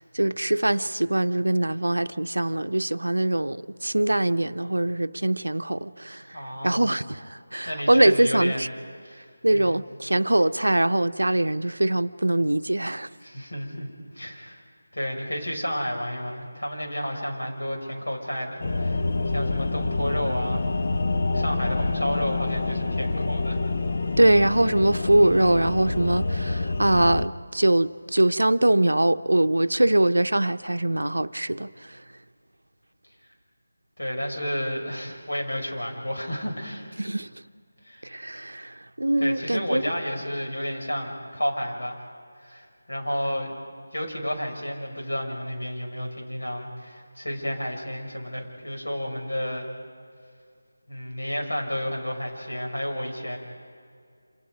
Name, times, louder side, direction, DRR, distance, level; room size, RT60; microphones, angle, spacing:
voice 1, 0.0-6.2 6.6-8.7 9.4-13.1 24.2-31.7 37.0-37.3 38.1-39.8, right 1 dB, 80° right, 0.7 m, -22 dB
voice 2, 6.3-7.0 7.7-8.8 9.0-9.2 9.5-9.8 13.2-14.6 14.9-20.7 21.3-23.6 34.0-36.9 37.8-38.2 39.2-42.0 42.4-43.6 43.9-49.7 50.9-53.4, equal, 75° left, 6.0 m, -31 dB
sound 1, 18.6-27.3, left 3 dB, 45° left, 0.9 m, -27 dB
28.5 x 27.0 x 5.2 m
figure-of-eight pair, 165°, 0 cm